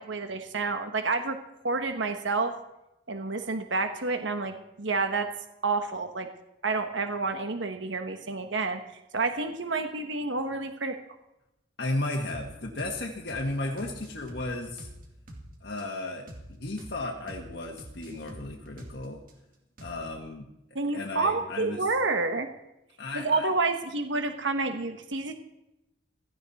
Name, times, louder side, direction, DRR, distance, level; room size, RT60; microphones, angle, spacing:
voice 1, 0.0-1.4 1.6-2.5 3.1-5.3 5.6-6.3 6.6-8.8 9.1-11.0 20.7-22.5 23.1-25.3, right 3 dB, 70° right, 7 dB, 1.3 m, -29 dB
voice 2, 11.8-14.9 15.6-19.2 19.8-20.5 20.9-21.8 23.0-23.5, left 2 dB, 55° left, 0 dB, 1.6 m, -34 dB
sound 1, 12.3-12.5 12.8-13.0 13.3-13.5 13.8-15.5 15.8-15.9 16.3-16.5 16.8-17.0 17.3-17.5 17.8-19.3 19.8-20.2, right 1 dB, 45° right, 2.5 m, -45 dB
16.5 x 14.5 x 4.2 m, 0.89 s
head